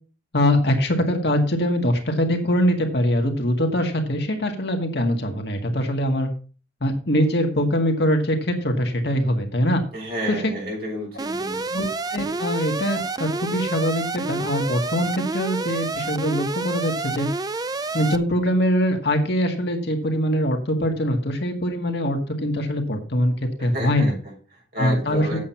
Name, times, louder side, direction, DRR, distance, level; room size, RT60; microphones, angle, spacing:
voice 1, 0.3-6.3 6.8-9.8 10.3-10.4 11.7-17.3 17.9-23.3 23.6-24.1 24.8-25.4, equal, 60° left, 4 dB, 1.9 m, -23 dB
voice 2, 9.9-11.7 23.6-25.4, equal, 55° right, -3 dB, 6.9 m, -31 dB
Alarm, 11.2-18.2, right 3 dB, 20° right, 0.4 m, -29 dB
8.5 x 7.6 x 5.7 m, 0.37 s
head